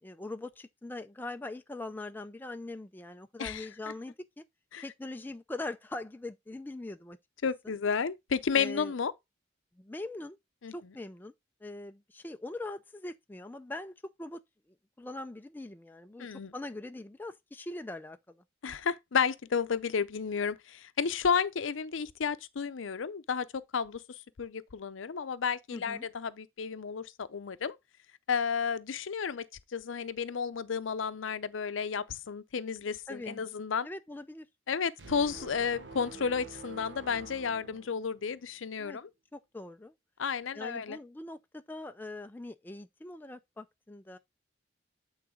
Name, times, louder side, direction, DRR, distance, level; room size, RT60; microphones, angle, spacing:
voice 1, 0.0-4.4 4.8-7.2 8.5-8.9 9.8-10.4 10.7-11.3 11.6-14.4 15.0-18.4 25.7-26.1 33.1-33.4 33.8-34.5 38.8-39.0 39.3-39.9 40.5-44.2, left 2 dB, 10° left, 0.4 m, -42 dB
voice 2, 7.4-9.1 10.6-10.7 16.2-16.5 18.6-24.0 24.4-27.8 28.3-33.9 34.7-39.1 40.2-41.0, left 6 dB, 90° left, 0.6 m, -32 dB
sound 1, 35.0-38.5, right 3 dB, 65° right, 1.1 m, -47 dB
8.6 x 4.0 x 3.6 m
head